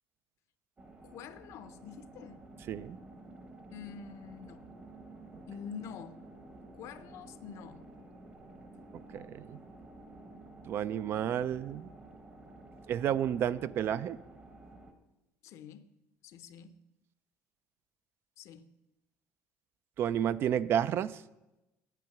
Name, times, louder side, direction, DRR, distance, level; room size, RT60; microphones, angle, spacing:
sound 1, 0.8-14.9, right 2 dB, 20° right, 1.0 m, -52 dB
voice 1, 1.0-2.4 3.7-4.6 5.5-6.2 6.7-7.8 8.7-8.8 15.4-15.9 16.2-16.8 18.4-18.7, left 7 dB, 60° left, 12 dB, 0.6 m, -46 dB
voice 2, 9.1-9.6 10.7-11.9 12.9-14.2 20.0-21.2, right 9 dB, 45° right, 17 dB, 0.3 m, -31 dB
9.2 x 8.7 x 5.9 m, 0.99 s
cardioid pair, 145°, 6 cm